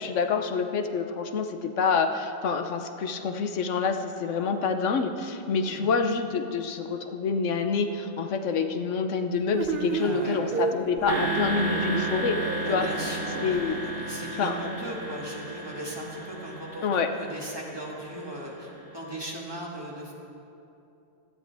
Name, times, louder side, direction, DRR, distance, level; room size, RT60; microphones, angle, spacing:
voice 1, 0.0-12.4 12.7-12.9 13.4-13.8 14.4-14.5 16.8-17.1, left 5 dB, 85° left, 7 dB, 1.1 m, -27 dB
sound 1, 9.5-13.7, right 5 dB, 50° right, 0.9 m, -32 dB
voice 2, 9.8-10.5 11.0-11.1 12.6-20.1, right 1 dB, 20° right, -3 dB, 1.9 m, -38 dB
sound 2, 11.1-18.9, right 1 dB, 70° right, 1.6 m, -33 dB
17.0 x 13.0 x 3.5 m, 2.8 s
omnidirectional pair, 1.2 m